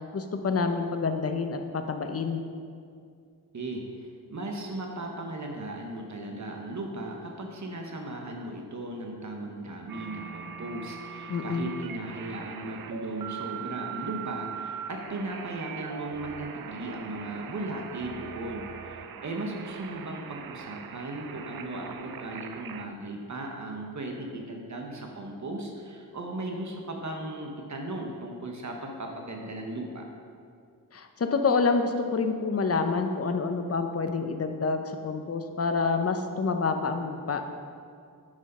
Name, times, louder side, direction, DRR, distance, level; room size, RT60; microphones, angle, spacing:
voice 1, 0.1-2.4 11.3-11.7 30.9-37.4, left 4 dB, 40° left, 6 dB, 0.7 m, -27 dB
voice 2, 3.5-30.1, right 2 dB, 50° right, 1 dB, 1.0 m, -37 dB
sound 1, 9.9-22.9, right 8 dB, 65° right, 0.5 m, -41 dB
9.8 x 6.2 x 5.4 m, 2.3 s
wide cardioid pair, 160°, 37 cm